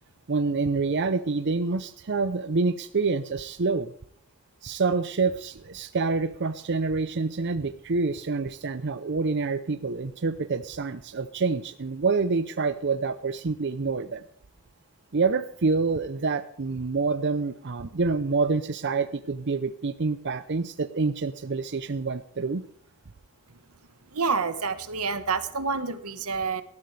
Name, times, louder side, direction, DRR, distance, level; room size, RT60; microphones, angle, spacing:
voice 1, 0.3-3.9 4.6-14.2 15.1-22.6, right 4 dB, 55° right, 11 dB, 0.6 m, -27 dB
voice 2, 24.1-26.6, right 5 dB, 85° right, 11 dB, 1.4 m, -28 dB
19.0 x 13.0 x 3.3 m, 0.62 s
head